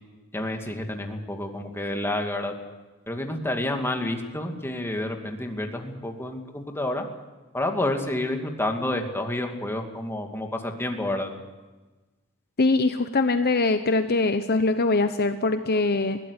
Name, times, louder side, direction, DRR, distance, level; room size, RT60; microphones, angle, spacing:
voice 1, 0.3-2.5 3.1-7.1 7.5-11.3, left 1 dB, 10° left, 3 dB, 2.4 m, -29 dB
voice 2, 12.6-16.2, left 3 dB, 45° left, 9 dB, 0.9 m, -22 dB
21.5 x 16.5 x 9.7 m, 1.2 s
head